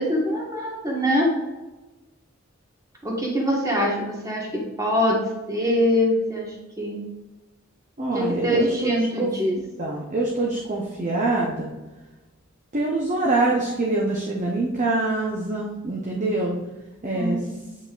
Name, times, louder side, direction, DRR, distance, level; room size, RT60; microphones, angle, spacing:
voice 1, 0.0-1.3 3.0-5.2 5.5-7.0 8.1-9.6 17.1-17.6, equal, 15° right, -3 dB, 1.5 m, -24 dB
voice 2, 8.0-8.9 9.2-9.3 9.8-11.7 12.7-16.6 17.0-17.4, right 2 dB, 40° right, -2 dB, 0.9 m, -24 dB
8.4 x 5.7 x 2.5 m, 1.1 s
head